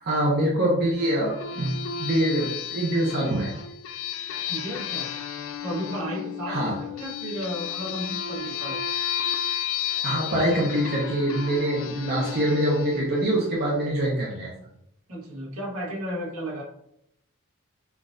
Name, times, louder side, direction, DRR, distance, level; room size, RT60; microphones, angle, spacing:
voice 1, 0.0-3.5 6.5-6.7 10.0-14.5, right 1 dB, 45° right, -4 dB, 0.7 m, -24 dB
sound 1, 1.0-14.2, left 8 dB, 60° left, 0.4 m, -33 dB
voice 2, 4.5-5.1 5.6-8.8 15.1-16.6, equal, 70° right, -4 dB, 1.4 m, -33 dB
6.0 x 2.4 x 2.5 m, 0.79 s
head